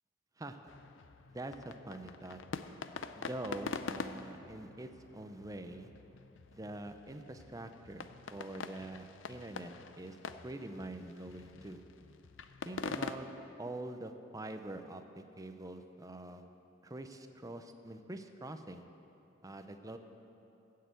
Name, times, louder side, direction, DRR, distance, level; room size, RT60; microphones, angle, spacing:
sound 1, 0.7-13.2, left 5 dB, 85° left, 0.5 m, -45 dB
voice 1, 1.3-2.4 3.1-5.9 6.5-10.2 10.4-11.8 12.6-13.3 13.6-16.4 16.8-18.8 19.4-20.0, right 1 dB, 20° right, 7 dB, 0.6 m, -45 dB
15.0 x 6.6 x 7.7 m, 2.9 s
head